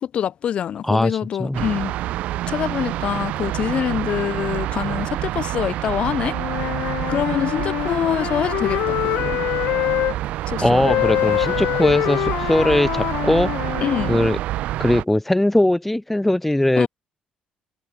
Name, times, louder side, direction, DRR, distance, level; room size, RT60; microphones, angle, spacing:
voice 1, 0.0-1.9 2.5-6.3 7.1-9.4 10.5-10.9 13.8-14.2 16.8-16.9, left 9 dB, 55° left, 1.1 m, -25 dB
sound 1, 1.5-15.0, right 15 dB, 80° right, 2.3 m, -27 dB
Wind instrument woodwind instrument, 6.2-10.2 10.8-14.4, left 17 dB, 85° left, 1.1 m, -25 dB
voice 2, 10.6-13.5 14.1-14.4 14.8-16.9, left 1 dB, 5° left, 0.8 m, -19 dB
cardioid pair, 95°, 2 cm